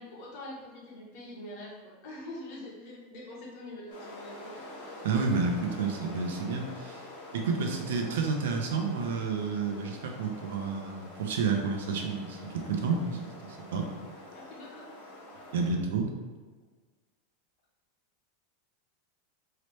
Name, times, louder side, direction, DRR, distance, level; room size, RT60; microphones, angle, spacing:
voice 1, 0.0-4.6 14.3-14.9, left 1 dB, 40° left, -4 dB, 1.0 m, -44 dB
sound 1, 3.9-15.7, left 1 dB, 75° left, 1.0 m, -46 dB
voice 2, 5.0-7.0 7.3-13.9 15.5-16.1, right 4 dB, 85° right, 2 dB, 0.6 m, -30 dB
3.2 x 2.9 x 3.0 m, 1.4 s
supercardioid pair, 175°, 0 cm